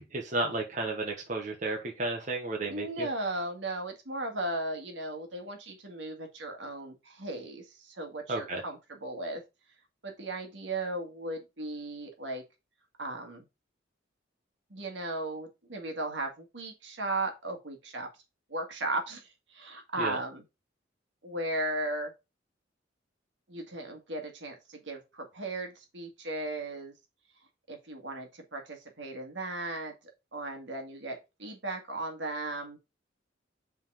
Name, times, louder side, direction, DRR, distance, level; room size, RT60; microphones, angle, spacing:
voice 1, 0.0-3.1 8.3-8.6 20.0-20.2, right 2 dB, 40° right, 0 dB, 1.3 m, -33 dB
voice 2, 2.7-9.4 10.0-12.4 13.0-13.4 14.7-18.1 18.5-20.4 21.2-22.1 23.5-26.9 27.7-29.9 30.3-32.8, right 2 dB, 70° right, 4 dB, 1.8 m, -36 dB
5.6 x 3.8 x 5.6 m, 0.25 s
head